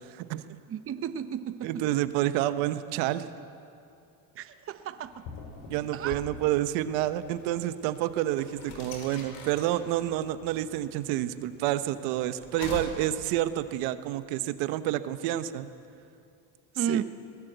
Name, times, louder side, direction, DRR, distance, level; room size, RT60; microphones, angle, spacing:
voice 1, 0.1-0.4 1.6-3.3 5.7-15.7 16.8-17.0, right 13 dB, 80° right, 11 dB, 1.1 m, -29 dB
voice 2, 0.7-1.8 4.4-5.2 5.9-6.2 16.8-17.0, right 8 dB, 35° right, 11 dB, 0.8 m, -33 dB
sound 1, 5.0-13.7, left 4 dB, 75° left, 5.1 m, -45 dB
23.0 x 19.0 x 8.1 m, 2.6 s
cardioid pair, 120°, 39 cm